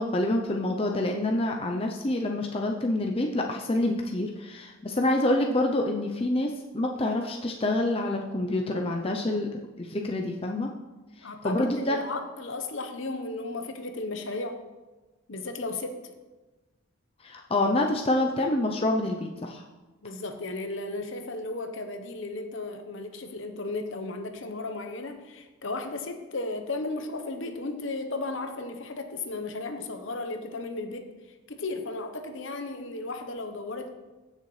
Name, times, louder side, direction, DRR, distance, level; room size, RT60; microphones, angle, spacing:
voice 1, 0.0-10.7 11.2-12.0 17.2-19.6, left 1 dB, 25° left, 2 dB, 0.5 m, -27 dB
voice 2, 11.2-14.6 15.3-16.0 20.0-31.1 31.5-34.0, left 2 dB, 60° left, 6 dB, 1.0 m, -35 dB
15.5 x 6.6 x 3.2 m, 1.2 s
head